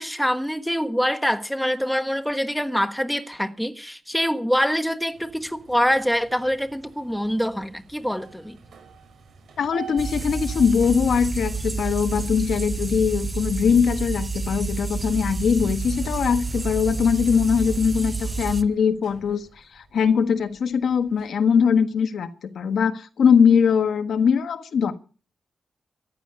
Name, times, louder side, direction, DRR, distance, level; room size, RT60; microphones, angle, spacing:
voice 1, 0.0-8.6, equal, ahead, 1.3 m, -25 dB
sound 1, 5.1-21.3, right 6 dB, 80° right, 5.1 m, -48 dB
voice 2, 9.6-19.4 19.7-24.9, left 6 dB, 75° left, 1.5 m, -21 dB
sound 2, 10.0-18.6, right 4 dB, 20° right, 0.8 m, -29 dB
14.5 x 11.5 x 6.9 m
wide cardioid pair, 150°, 0 cm